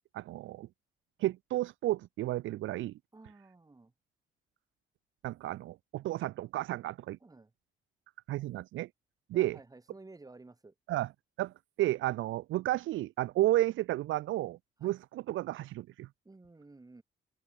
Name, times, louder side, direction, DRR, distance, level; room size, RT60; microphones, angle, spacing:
voice 1, 0.1-0.7 1.2-2.9 5.2-7.2 8.3-8.9 9.3-9.6 10.9-11.1 11.4-16.1, right 16 dB, 80° right, 0.6 m, -32 dB
voice 2, 3.1-3.9 7.2-7.5 9.3-10.7 14.8-14.9 16.2-17.0, right 3 dB, 20° right, 3.0 m, -53 dB
cardioid pair, 90°, 20 cm